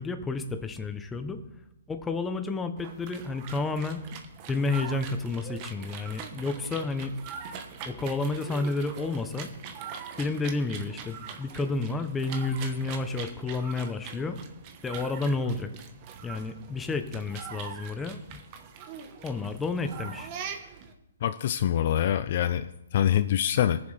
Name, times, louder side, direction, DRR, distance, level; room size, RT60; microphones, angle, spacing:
voice 1, 0.0-1.4 1.9-4.0 4.5-7.1 7.9-9.5 10.2-14.4 14.8-15.7 16.2-18.4 19.2-20.3, left 3 dB, 10° left, 8 dB, 0.7 m, -31 dB
sound 1, 2.8-20.9, right 7 dB, 30° right, 1.1 m, -42 dB
voice 2, 21.2-22.7 22.9-23.8, left 10 dB, 45° left, 13 dB, 0.4 m, -24 dB
19.5 x 7.2 x 3.3 m, 0.87 s
hypercardioid pair, 160°, 0 cm